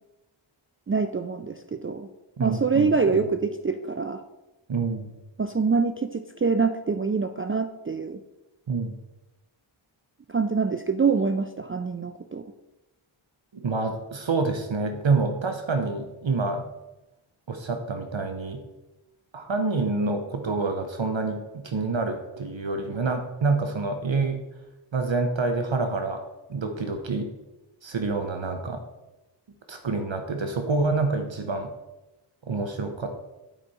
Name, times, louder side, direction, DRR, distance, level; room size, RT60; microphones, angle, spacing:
voice 1, 0.9-2.1 2.4-4.2 5.4-8.2 10.3-12.5, right 4 dB, 30° right, 8 dB, 0.3 m, -25 dB
voice 2, 2.4-2.9 4.7-5.2 8.7-8.9 13.5-16.7 17.5-18.6 19.3-24.4 24.9-26.2 26.5-27.3 27.8-28.8 29.7-31.7 32.5-33.1, right 3 dB, 65° right, 5 dB, 0.8 m, -27 dB
9.2 x 4.8 x 4.1 m, 1.0 s
wide cardioid pair, 55°, 50 cm